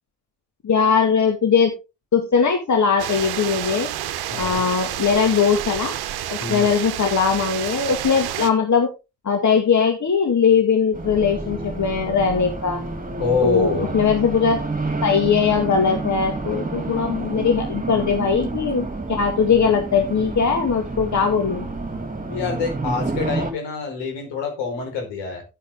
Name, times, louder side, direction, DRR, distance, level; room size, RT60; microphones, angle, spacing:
voice 1, 0.6-1.7 2.1-3.9 4.4-5.9 6.3-8.9 9.2-12.8 13.4-14.6 15.0-21.7, left 6 dB, 40° left, 4 dB, 2.3 m, -20 dB
sound 1, 3.0-8.5, right 12 dB, 55° right, 1.2 m, -29 dB
voice 2, 4.3-4.6 6.4-6.7 13.2-13.9 22.3-25.4, left 5 dB, 65° left, 3 dB, 4.9 m, -26 dB
Race car auto racing, 10.9-23.5, right 3 dB, 15° right, 2.6 m, -29 dB
11.5 x 9.4 x 3.7 m, 0.28 s
figure-of-eight pair, 45°, 46 cm